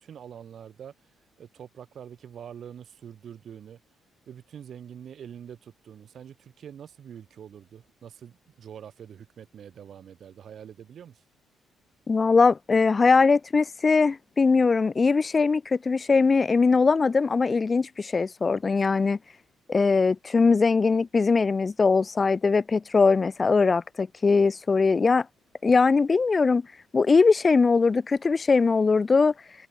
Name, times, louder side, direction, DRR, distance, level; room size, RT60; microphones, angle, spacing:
voice 1, 0.0-3.8 4.3-11.2, right 8 dB, 60° right, 6.9 m, -45 dB
voice 2, 12.1-19.2 19.7-25.3 25.6-26.6 26.9-29.3, left 4 dB, 30° left, 0.3 m, -21 dB
cardioid pair, 90°, 0 cm